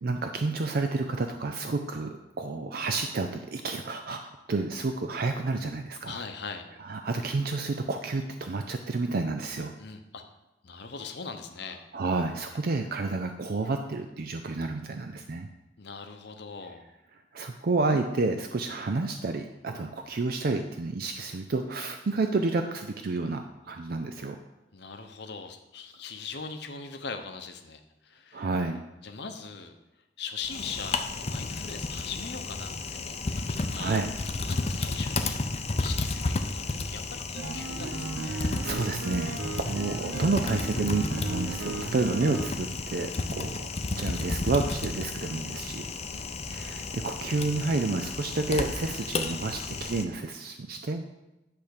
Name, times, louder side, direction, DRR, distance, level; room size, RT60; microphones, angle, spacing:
voice 1, 0.0-6.2 6.8-9.7 11.9-15.5 17.3-24.4 28.3-28.8 33.8-34.1 38.3-45.9 46.5-51.0, right 3 dB, 55° right, 6 dB, 0.5 m, -30 dB
voice 2, 6.0-6.7 9.8-10.2 10.6-11.8 15.8-16.9 24.7-28.5 29.0-29.7 30.2-34.0 34.4-35.4 35.8-38.4 40.0-40.3 46.1-46.6, left 5 dB, 65° left, 6 dB, 0.9 m, -41 dB
Typing, 30.4-50.0, left 3 dB, 35° left, 0.6 m, -33 dB
sound 1, 37.3-42.5, right 3 dB, 85° right, 0.8 m, -35 dB
10.5 x 3.6 x 6.6 m, 0.98 s
head